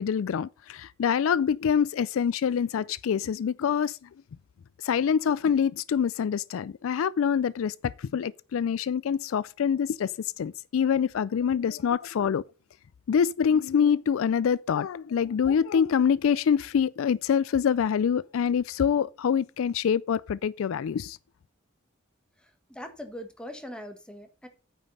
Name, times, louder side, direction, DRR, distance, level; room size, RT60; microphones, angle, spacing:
voice 1, 0.0-4.0 4.8-10.1 10.4-12.4 13.1-21.2, left 7 dB, 75° left, 0.4 m, -25 dB
voice 2, 22.7-24.5, equal, 5° left, 1.5 m, -41 dB
9.2 x 5.3 x 5.5 m
head